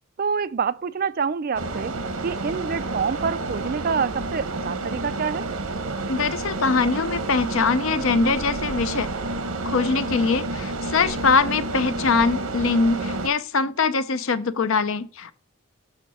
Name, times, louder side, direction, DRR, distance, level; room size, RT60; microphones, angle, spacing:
voice 1, 0.2-2.0 2.2-5.5, right 6 dB, 40° right, 0.3 m, -27 dB
sound 1, 1.5-13.3, right 2 dB, 80° right, 1.1 m, -30 dB
voice 2, 6.1-9.1 9.6-15.3, left 4 dB, 65° left, 0.6 m, -22 dB
7.1 x 6.4 x 4.2 m
head